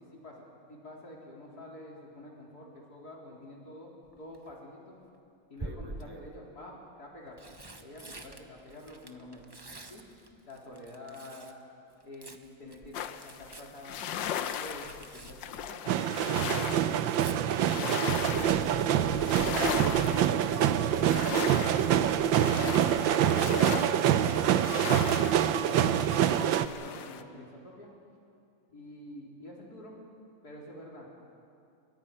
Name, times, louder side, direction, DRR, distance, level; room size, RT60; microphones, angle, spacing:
voice 1, 0.0-3.9 4.2-5.0 5.5-7.4 7.8-9.4 9.9-10.0 10.5-11.5 12.0-17.4 17.8-18.9 19.3-21.5 22.1-23.0 23.3-25.1 25.5-27.9 28.7-29.9 30.4-31.1, left 1 dB, 50° left, -3 dB, 4.5 m, -47 dB
Tearing, 4.1-4.5 5.6-6.3 7.1-11.6 11.9-16.2 16.5-17.4 19.2-19.5 19.8-19.9, right 2 dB, 20° right, 0.7 m, -47 dB
sound 1, 12.9-27.2, left 9 dB, 75° left, 1.5 m, -38 dB
sound 2, 15.9-26.7, right 10 dB, 80° right, 1.5 m, -26 dB
29.0 x 22.5 x 5.6 m, 2.5 s
omnidirectional pair, 2.1 m